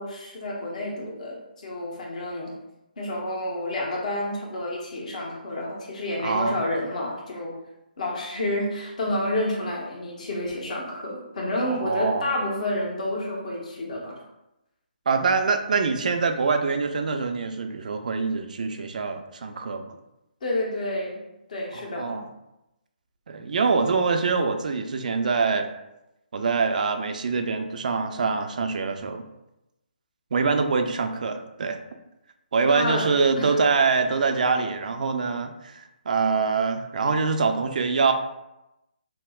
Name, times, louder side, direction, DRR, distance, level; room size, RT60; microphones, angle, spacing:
voice 1, 0.0-2.5 3.0-7.5 8.0-14.2 20.4-21.2 21.5-22.2 32.7-33.1 33.4-33.6, left 1 dB, 50° left, -2 dB, 1.0 m, -29 dB
voice 2, 6.2-6.6 11.7-12.3 15.1-20.0 21.7-22.2 23.3-25.7 26.3-29.2 30.3-31.8 32.5-38.1, right 4 dB, 55° right, 6 dB, 0.4 m, -24 dB
5.7 x 2.0 x 2.3 m, 0.91 s
figure-of-eight pair, 140°, 5 cm